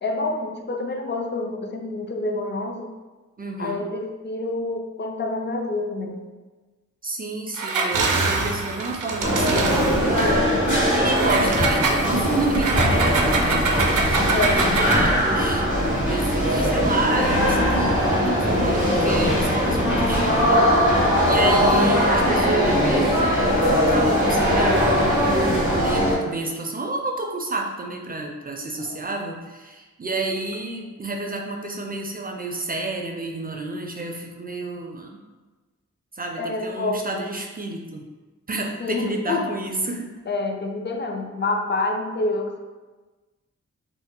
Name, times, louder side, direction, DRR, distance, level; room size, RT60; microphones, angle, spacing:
voice 1, 0.0-2.9 3.6-6.3 14.2-15.2 21.4-21.9 28.8-29.0 36.4-37.2 38.8-39.5 40.3-42.6, left 2 dB, 35° left, 3 dB, 0.4 m, -28 dB
voice 2, 3.4-3.9 7.0-13.7 14.7-20.7 21.2-25.2 25.7-35.2 36.1-38.1 38.5-40.1, right 2 dB, 30° right, 2 dB, 0.4 m, -30 dB
Engine, 7.5-10.3 11.1-15.2, right 3 dB, 90° right, 0.5 m, -24 dB
sound 1, 9.2-26.1, equal, 85° left, 1.4 m, -20 dB
2.7 x 2.0 x 3.6 m, 1.3 s
cardioid pair, 60°, 31 cm